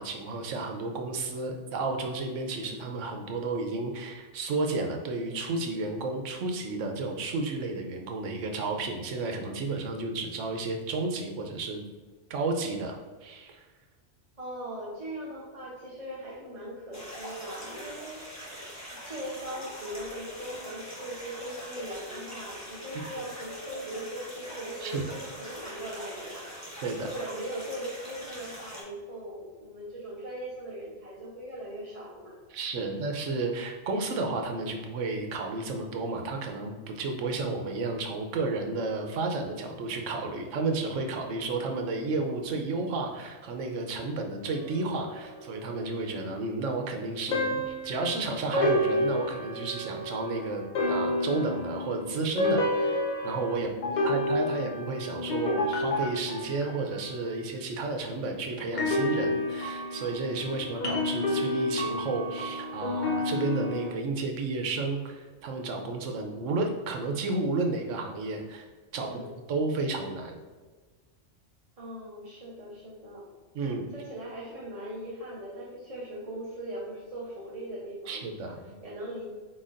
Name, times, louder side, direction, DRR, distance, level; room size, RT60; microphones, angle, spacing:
voice 1, 0.0-11.8 12.3-13.7 22.9-23.0 24.8-25.2 26.8-27.1 32.5-68.7 68.9-69.2 69.5-70.4 73.5-73.9 78.1-78.7, right 3 dB, 85° right, 4 dB, 1.0 m, -32 dB
voice 2, 14.4-18.4 19.0-32.4 32.8-33.0 54.0-54.6 69.0-69.3 71.8-73.3 73.9-78.5 78.8-79.2, right 1 dB, 35° right, -7 dB, 0.8 m, -40 dB
sound 1, 16.9-28.8, equal, 15° left, 1.1 m, -43 dB
sound 2, 44.4-46.0 47.3-57.3 58.7-63.9, left 1 dB, 50° left, 0.6 m, -30 dB
4.3 x 4.0 x 2.5 m, 1.4 s
omnidirectional pair, 1.2 m